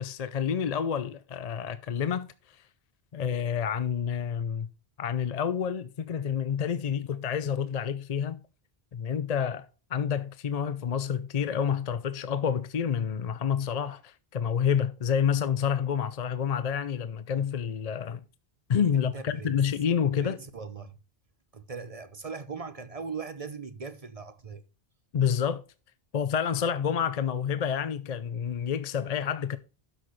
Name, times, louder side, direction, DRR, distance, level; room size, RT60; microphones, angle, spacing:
voice 1, 0.0-2.6 3.1-4.7 5.0-8.4 8.9-9.7 9.9-18.2 18.7-20.4 25.1-25.6 26.1-29.6, left 7 dB, 50° left, 0.6 m, -28 dB
voice 2, 18.9-19.6 20.2-21.0 21.5-24.6, right 5 dB, 40° right, 0.7 m, -39 dB
12.0 x 6.4 x 3.1 m
omnidirectional pair, 1.1 m